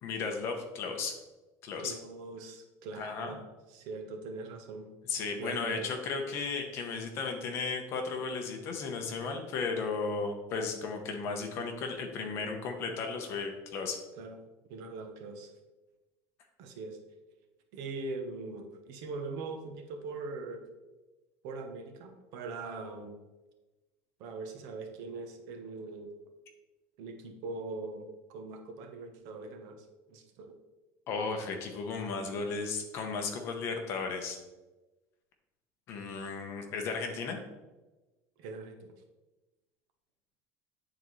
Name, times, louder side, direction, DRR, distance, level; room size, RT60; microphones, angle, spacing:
voice 1, 0.0-1.1 1.6-2.0 3.0-3.4 5.1-14.0 31.1-34.4 35.9-37.4, left 4 dB, 40° left, 4 dB, 0.9 m, -35 dB
voice 2, 1.8-3.4 3.7-4.9 5.3-5.9 14.2-14.4 14.7-15.5 16.6-17.0 17.7-20.6 21.4-23.2 24.2-26.1 27.0-29.8 30.1-30.5 38.4-38.9, right 3 dB, 60° right, 5 dB, 0.9 m, -41 dB
9.2 x 4.1 x 3.1 m, 1.1 s
cardioid pair, 175°, 7 cm